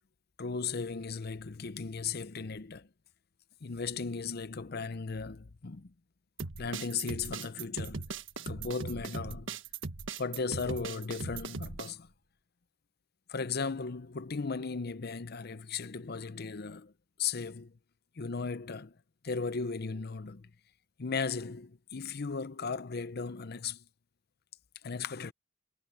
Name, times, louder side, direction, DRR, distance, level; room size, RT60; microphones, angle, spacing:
voice 1, 0.4-2.9 3.6-5.9 6.6-8.0 8.4-9.6 10.2-12.1 13.3-16.9 17.2-17.7 18.2-18.9 19.2-20.5 21.0-23.8 24.8-25.3, left 5 dB, 55° left, 0.7 m, -36 dB
sound 1, 6.4-11.9, right 4 dB, 85° right, 1.5 m, -39 dB
head